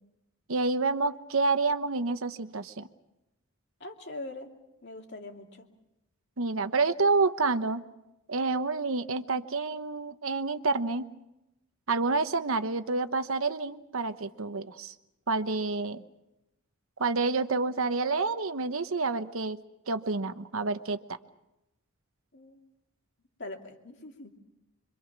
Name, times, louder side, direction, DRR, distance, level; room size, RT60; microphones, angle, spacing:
voice 1, 0.5-2.9 6.4-7.8 8.3-11.1 11.9-14.9 15.3-16.0 17.0-19.6 19.9-21.0, right 3 dB, 70° right, 10 dB, 1.0 m, -28 dB
voice 2, 3.8-4.5 4.8-5.6 22.3-22.6 23.4-24.4, left 2 dB, 50° left, 2 dB, 2.7 m, -42 dB
26.0 x 24.5 x 6.0 m, 0.92 s
head